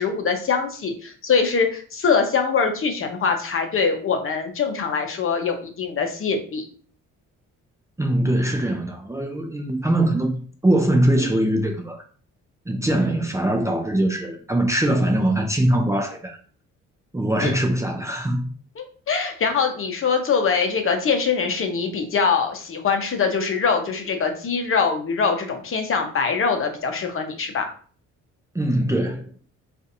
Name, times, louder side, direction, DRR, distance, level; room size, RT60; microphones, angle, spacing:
voice 1, 0.0-6.6 17.4-17.5 18.8-27.7, left 5 dB, 45° left, 0.8 m, -23 dB
voice 2, 8.0-12.0 12.7-16.4 17.1-18.5 28.5-29.3, right 1 dB, 10° right, 0.5 m, -22 dB
3.9 x 2.5 x 2.7 m
cardioid pair, 90°, 30 cm